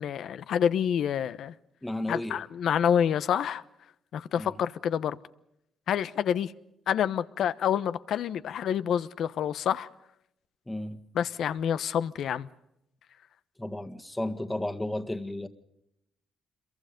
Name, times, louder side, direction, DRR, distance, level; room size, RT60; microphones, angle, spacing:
voice 1, 0.0-1.5 2.1-3.6 4.1-5.2 5.9-6.5 6.9-9.9 11.1-12.5, left 9 dB, 70° left, 1.0 m, -27 dB
voice 2, 1.8-2.4 4.4-4.6 10.7-11.0 13.6-15.5, left 1 dB, 10° left, 1.7 m, -33 dB
27.5 x 23.0 x 5.2 m
cardioid pair, 90°, 0 cm